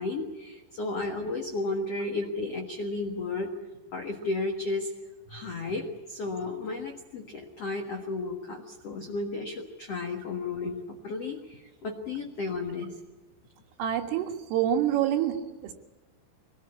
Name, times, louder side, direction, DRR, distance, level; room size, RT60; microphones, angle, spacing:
voice 1, 0.0-3.5 3.9-4.9 5.3-12.9, left 3 dB, 85° left, 3 dB, 1.3 m, -33 dB
voice 2, 13.8-15.7, right 10 dB, 85° right, 5 dB, 4.2 m, -27 dB
24.0 x 19.5 x 8.6 m, 1.2 s
omnidirectional pair, 5.6 m